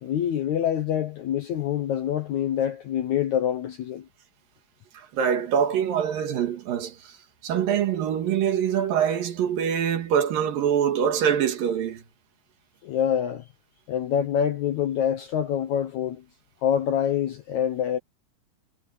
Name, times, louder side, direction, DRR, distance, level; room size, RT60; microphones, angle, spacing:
voice 1, 0.0-4.1 12.8-13.4 13.9-16.2 16.6-18.0, left 9 dB, 70° left, 1.9 m, -26 dB
voice 2, 4.9-7.2 7.4-12.0, right 8 dB, 65° right, 3.3 m, -24 dB
omnidirectional pair, 4.5 m